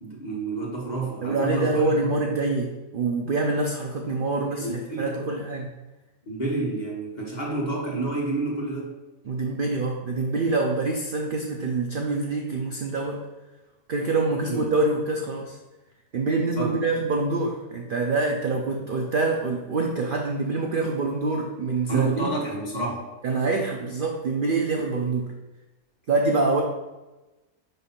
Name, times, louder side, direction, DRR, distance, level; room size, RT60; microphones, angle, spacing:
voice 1, 0.0-2.2 4.6-5.3 6.3-8.9 14.5-14.6 16.6-16.8 21.9-23.0, right 2 dB, 30° left, -3 dB, 1.3 m, -29 dB
voice 2, 1.2-5.7 9.2-13.3 13.9-15.6 16.1-22.3 23.2-25.3 26.1-26.6, right 3 dB, 55° right, 1 dB, 0.5 m, -25 dB
5.5 x 3.3 x 5.6 m, 1.1 s
omnidirectional pair, 1.5 m